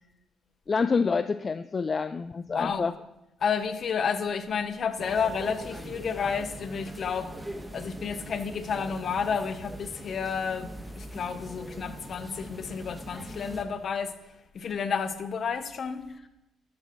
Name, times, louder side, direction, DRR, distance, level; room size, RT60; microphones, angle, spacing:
voice 1, 0.7-2.9, left 5 dB, 35° left, 11 dB, 0.4 m, -27 dB
voice 2, 2.5-2.9 3.4-7.3 7.7-14.1 14.5-16.0, left 6 dB, 55° left, 9 dB, 1.0 m, -31 dB
sound 1, 5.0-13.6, right 1 dB, 10° right, 1.4 m, -41 dB
12.5 x 10.5 x 3.1 m, 0.93 s
cardioid pair, 90°, 0 cm